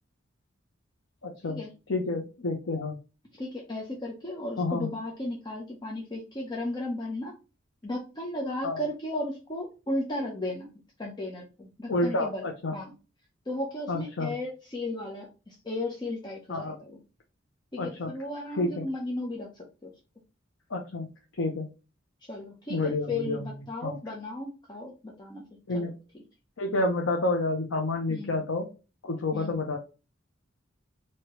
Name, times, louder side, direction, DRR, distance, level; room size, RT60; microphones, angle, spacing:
voice 1, 1.2-1.6 1.9-3.0 4.6-4.9 8.6-8.8 11.9-12.7 13.9-14.3 16.5-16.8 17.8-18.1 18.6-18.9 20.7-21.1 21.4-21.7 22.7-23.5 23.8-24.0 25.7-25.9 26.6-28.7 29.0-29.8, left 2 dB, 90° left, 1 dB, 0.7 m, -29 dB
voice 2, 3.3-7.3 7.8-10.7 11.0-12.9 13.5-17.0 17.7-19.9 22.3-25.4 25.7-25.9 26.7-26.8 28.1-28.4 29.3-29.6, left 1 dB, 25° left, -2 dB, 0.8 m, -35 dB
4.6 x 2.9 x 3.0 m, 0.31 s
head